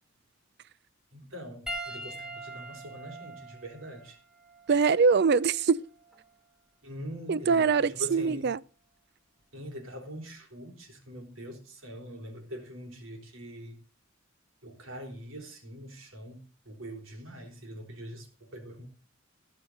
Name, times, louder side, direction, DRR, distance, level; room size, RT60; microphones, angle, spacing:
voice 1, 1.1-4.2 4.7-4.8 6.8-8.5 9.5-13.8 14.6-18.9, equal, 70° right, 3.9 m, -43 dB
Piano, 1.7-6.3 7.3-7.5 9.4-9.5, right 1 dB, 5° right, 1.5 m, -43 dB
voice 2, 4.7-5.8 7.3-8.6, right 5 dB, 55° right, 0.5 m, -23 dB
17.0 x 5.7 x 6.5 m
head